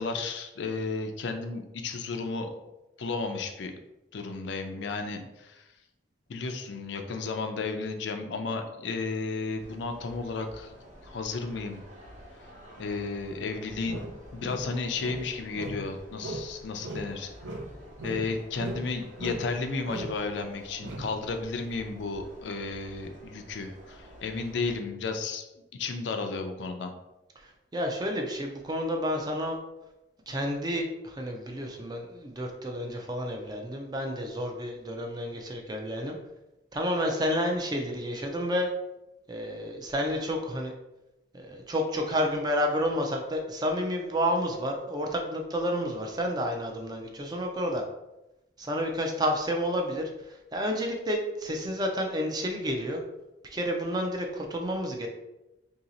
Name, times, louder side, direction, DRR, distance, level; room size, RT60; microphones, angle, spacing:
voice 1, 0.0-2.5 3.0-3.8 4.1-5.6 6.3-10.7 11.0-11.8 12.8-17.3 18.0-25.4 25.7-26.9, left 4 dB, 75° left, 6 dB, 0.4 m, -33 dB
sound 1, 9.6-24.8, equal, 40° right, 0.8 m, -50 dB
sound 2, 13.9-15.9 16.2-16.6 16.8-18.9 19.2-19.5 19.9-20.2 20.8-21.2, right 2 dB, 80° right, 0.5 m, -38 dB
voice 2, 27.7-29.6 30.3-36.2 36.7-38.7 39.3-40.7 41.3-47.8 48.6-53.0 53.5-55.1, equal, 20° right, 2 dB, 0.4 m, -30 dB
2.8 x 2.7 x 4.0 m, 0.97 s
head